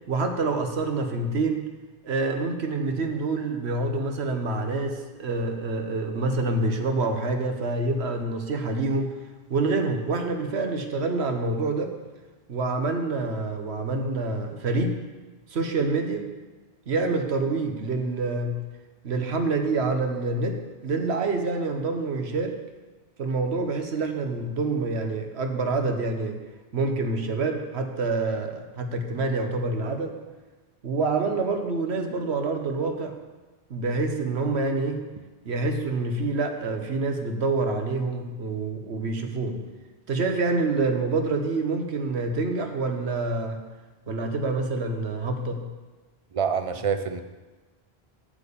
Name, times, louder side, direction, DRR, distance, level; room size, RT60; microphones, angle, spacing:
voice 1, 0.1-1.7 2.0-9.1 9.5-12.0 12.5-15.0 15.5-16.3 16.9-18.6 19.0-22.6 23.2-26.4 26.7-30.2 30.8-33.1 33.7-35.0 35.4-39.6 40.1-43.6 44.1-45.7, right 3 dB, 90° right, 5 dB, 1.4 m, -27 dB
voice 2, 46.3-47.2, right 6 dB, 40° right, 9 dB, 0.6 m, -26 dB
8.3 x 7.8 x 6.9 m, 1.2 s
omnidirectional pair, 1.1 m